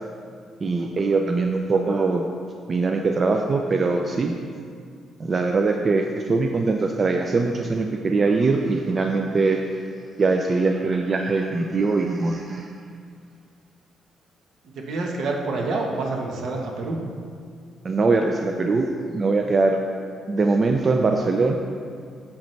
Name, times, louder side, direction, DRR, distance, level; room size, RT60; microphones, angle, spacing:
voice 1, 0.6-2.3 2.7-4.4 5.2-9.6 10.2-12.7 17.8-18.9 19.1-19.8 20.3-21.5, right 3 dB, 40° right, 4 dB, 0.4 m, -22 dB
voice 2, 14.7-17.0, right 3 dB, 70° right, 1 dB, 1.1 m, -27 dB
8.8 x 7.2 x 3.2 m, 2.2 s
cardioid pair, 90°, 0 cm